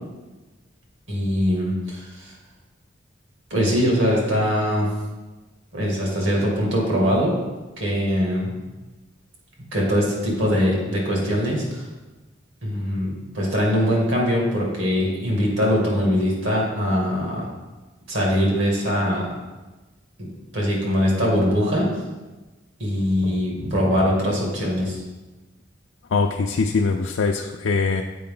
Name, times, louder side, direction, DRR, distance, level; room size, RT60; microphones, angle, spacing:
voice 1, 1.1-2.3 3.5-4.9 5.7-7.4 7.8-8.6 9.7-11.8 12.6-17.5 18.1-19.3 20.2-20.3 20.5-21.9 22.8-25.0, equal, 70° right, -3 dB, 2.2 m, -22 dB
voice 2, 26.1-28.0, left 4 dB, 80° left, 2 dB, 0.4 m, -22 dB
7.7 x 4.7 x 3.7 m, 1.2 s
head